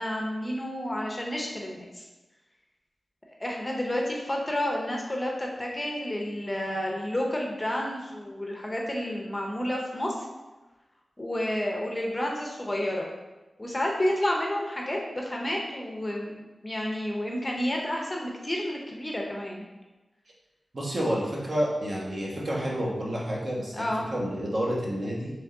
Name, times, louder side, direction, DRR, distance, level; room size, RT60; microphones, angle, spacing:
voice 1, 0.0-2.0 3.4-10.3 11.2-13.1 13.6-19.6 23.7-24.0, left 1 dB, 20° left, -1 dB, 0.6 m, -30 dB
voice 2, 20.7-25.3, equal, 50° right, -4 dB, 1.0 m, -29 dB
3.5 x 3.2 x 3.7 m, 1.1 s
wide cardioid pair, 100°, 0 cm